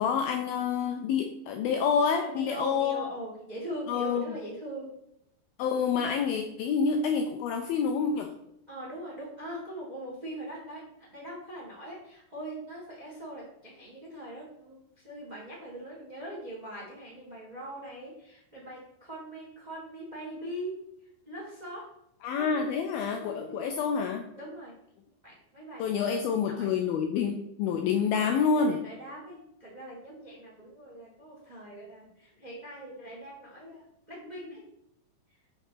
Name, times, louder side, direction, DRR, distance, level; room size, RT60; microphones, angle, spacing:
voice 1, 0.0-3.1 3.9-4.2 5.6-8.3 22.2-24.2 25.8-28.8, left 6 dB, 85° left, 4 dB, 2.1 m, -28 dB
voice 2, 2.2-4.9 8.7-20.8 21.2-21.9 22.3-22.5 23.1-23.6 24.3-24.7 25.2-26.7 28.1-34.6, right 1 dB, 25° right, -4 dB, 1.0 m, -41 dB
7.0 x 4.1 x 5.9 m, 0.79 s
omnidirectional pair, 4.9 m